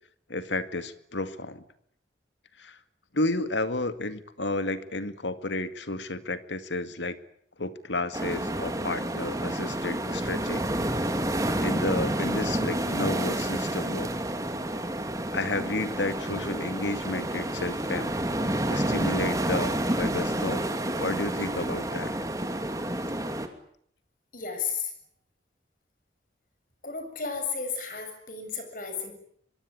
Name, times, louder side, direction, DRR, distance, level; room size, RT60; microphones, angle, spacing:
voice 1, 0.3-1.6 2.6-2.8 3.1-7.2 7.6-10.7 11.6-14.1 15.3-18.1 18.7-20.6 20.9-22.1, left 2 dB, 85° left, 11 dB, 2.2 m, -31 dB
sound 1, 8.1-23.5, right 1 dB, 20° right, 2.6 m, -29 dB
voice 2, 24.3-24.9 26.8-29.1, left 5 dB, 50° left, 7 dB, 7.2 m, -33 dB
24.0 x 24.0 x 9.8 m, 0.67 s
head